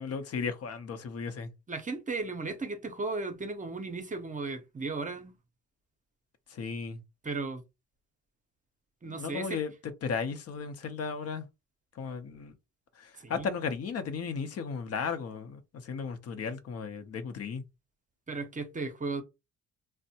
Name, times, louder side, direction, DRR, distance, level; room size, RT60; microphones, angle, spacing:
voice 1, 0.0-1.5 6.5-7.0 9.0-11.5 12.0-12.5 13.0-17.6, left 5 dB, 55° left, 0.7 m, -35 dB
voice 2, 1.7-5.3 7.2-7.6 9.0-9.6 13.2-13.4 18.3-19.2, right 3 dB, 25° right, 0.7 m, -35 dB
3.3 x 2.1 x 2.7 m
cardioid pair, 90°, 30 cm